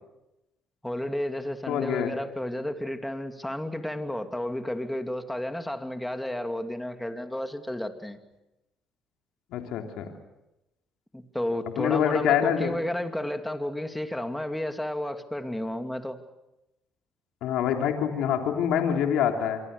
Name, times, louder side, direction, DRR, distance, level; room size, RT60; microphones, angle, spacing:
voice 1, 0.8-8.2 11.1-16.2, left 1 dB, 5° left, 6 dB, 2.6 m, -32 dB
voice 2, 1.7-2.1 9.5-10.1 11.8-12.8 17.4-19.6, left 9 dB, 80° left, 4 dB, 3.3 m, -25 dB
26.5 x 24.0 x 6.8 m, 0.93 s
supercardioid pair, 80°, 0 cm